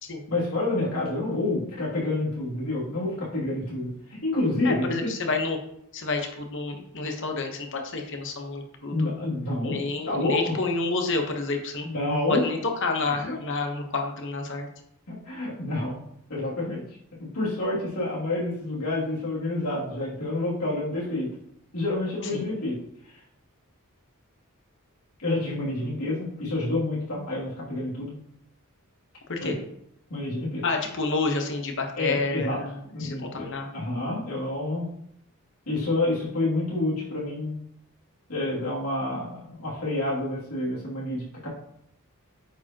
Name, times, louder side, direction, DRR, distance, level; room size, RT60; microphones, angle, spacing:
voice 1, 0.3-5.2 8.9-9.8 10.1-10.5 11.8-12.5 13.3-13.4 15.1-15.9 16.3-16.8 17.3-21.3 21.7-22.8 25.2-28.1 29.4-29.6 30.1-30.6 32.0-32.6 32.9-34.9 35.7-37.6 38.3-41.5, left 2 dB, 85° left, -5 dB, 2.7 m, -28 dB
voice 2, 4.6-5.6 5.9-9.1 9.6-11.9 12.3-14.7 22.3-22.5 29.3-29.5 30.6-33.7, left 3 dB, 60° left, 3 dB, 1.1 m, -29 dB
9.0 x 4.8 x 2.9 m, 0.72 s
head